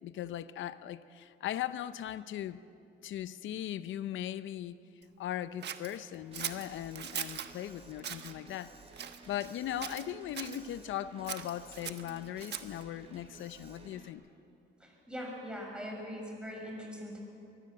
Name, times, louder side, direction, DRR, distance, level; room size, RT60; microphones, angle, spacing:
voice 1, 0.0-2.6 3.0-4.8 5.2-8.7 9.3-14.2, left 11 dB, 75° left, 14 dB, 0.7 m, -39 dB
Scissors, 5.6-7.5 8.0-8.3 8.9-9.6 9.8-10.6 11.2-12.8, right 9 dB, 60° right, 1.2 m, -40 dB
Alarm, 6.3-14.1, right 3 dB, 30° right, 3.0 m, -55 dB
voice 2, 14.8-17.2, equal, 5° right, -1 dB, 6.8 m, -41 dB
23.5 x 16.0 x 7.8 m, 2.7 s
cardioid pair, 90°, 20 cm